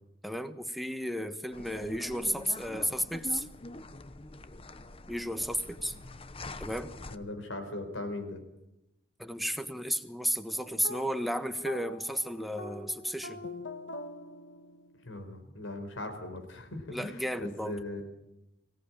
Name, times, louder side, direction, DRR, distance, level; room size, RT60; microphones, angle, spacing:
voice 1, 0.2-3.5 5.1-5.9 6.6-6.9 9.2-13.4 16.9-17.8, equal, ahead, 8 dB, 1.3 m, -33 dB
sound 1, 1.5-7.2, left 2 dB, 30° left, 0.9 m, -45 dB
voice 2, 7.1-8.4 15.0-18.1, left 2 dB, 85° left, 7 dB, 4.6 m, -39 dB
sound 2, 10.5-15.1, left 2 dB, 65° left, 2.1 m, -44 dB
24.0 x 17.0 x 8.9 m, 0.88 s
head